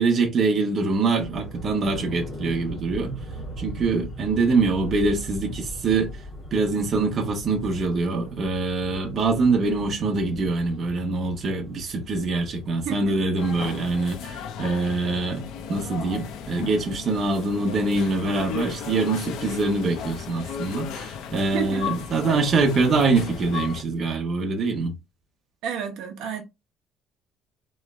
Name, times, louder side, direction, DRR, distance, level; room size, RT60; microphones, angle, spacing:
voice 1, 0.0-3.2 3.6-6.1 6.5-25.0, right 3 dB, 30° right, 0.9 m, -24 dB
sound 1, 1.2-14.4, equal, 5° left, 2.2 m, -39 dB
sound 2, 13.4-23.8, left 8 dB, 65° left, 0.7 m, -35 dB
voice 2, 21.5-21.9 25.6-26.4, right 8 dB, 65° right, 0.8 m, -30 dB
3.6 x 3.1 x 3.2 m
cardioid pair, 180°, 0 cm